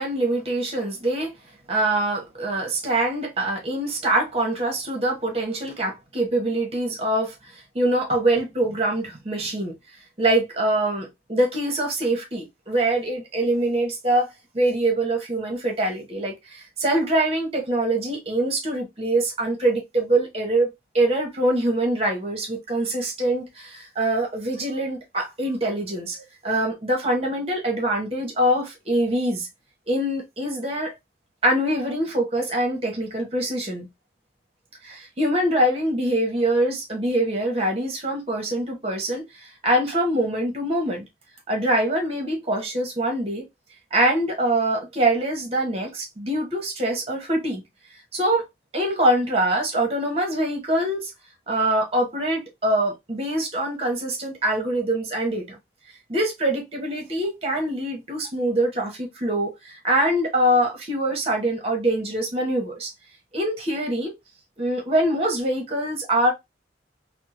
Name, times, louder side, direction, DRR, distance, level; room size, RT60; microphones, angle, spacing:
voice 1, 0.0-1.3 1.7-9.8 10.2-14.3 14.5-20.7 20.9-29.5 29.9-30.9 31.4-33.9 34.8-41.0 41.5-43.5 43.9-47.6 48.1-48.4 48.7-51.1 51.5-55.6 56.1-62.9 63.3-64.1 64.6-66.3, right 1 dB, 35° right, 1.1 m, -24 dB
3.5 x 2.1 x 2.8 m
head